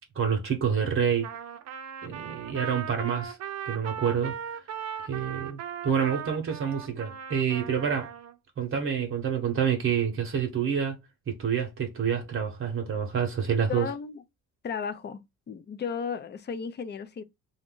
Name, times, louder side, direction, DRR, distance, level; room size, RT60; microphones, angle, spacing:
voice 1, 0.1-1.3 2.0-3.4 3.7-4.4 5.0-8.1 8.6-11.0 11.3-13.9, right 7 dB, 45° right, 0.9 m, -27 dB
Trumpet, 1.2-8.3, right 8 dB, 60° right, 0.5 m, -38 dB
voice 2, 13.7-14.2 14.6-15.2 15.5-17.2, left 6 dB, 35° left, 0.5 m, -34 dB
2.5 x 2.2 x 3.7 m
cardioid pair, 90°, 30 cm